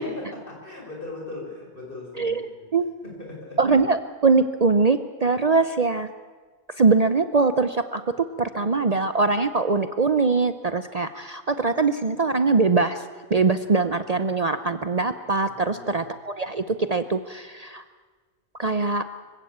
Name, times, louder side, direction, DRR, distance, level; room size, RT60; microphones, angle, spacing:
voice 1, 0.0-2.7 3.0-3.6 15.4-16.0, left 2 dB, 50° left, -1 dB, 6.1 m, -39 dB
voice 2, 3.6-6.1 6.8-8.0 8.4-13.0 13.3-17.8 18.6-19.1, right 4 dB, 40° right, 11 dB, 0.8 m, -22 dB
24.5 x 16.0 x 8.6 m, 1.4 s
omnidirectional pair, 1.1 m